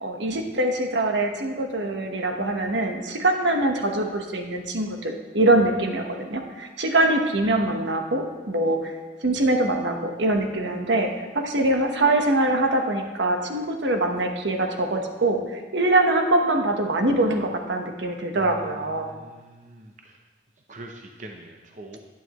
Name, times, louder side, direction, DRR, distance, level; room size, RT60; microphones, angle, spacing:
voice 1, 0.0-8.9 9.2-19.1, right 2 dB, 80° right, 3 dB, 1.1 m, -23 dB
voice 2, 18.4-20.2 20.7-22.0, right 1 dB, 40° right, 2 dB, 0.7 m, -43 dB
11.0 x 9.2 x 3.1 m, 1.3 s
head